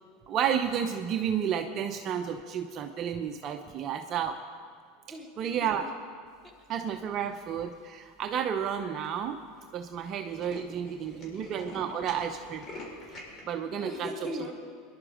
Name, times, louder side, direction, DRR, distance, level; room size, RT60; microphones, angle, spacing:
voice 1, 0.3-4.4 5.4-5.9 6.7-9.4 9.7-12.6 13.1-13.2 13.4-14.1, right 8 dB, 45° right, 5 dB, 0.8 m, -31 dB
voice 2, 5.1-5.9 6.4-6.5 10.8-11.4 13.7-14.5, equal, ahead, -4 dB, 3.3 m, -40 dB
Tools, 7.3-7.8 8.4-8.5 8.7-8.8 9.0-9.2 9.5-9.7 9.9-13.4, left 2 dB, 30° left, 5.1 m, -45 dB
22.0 x 11.0 x 5.1 m, 2.2 s
hypercardioid pair, 100°, 0 cm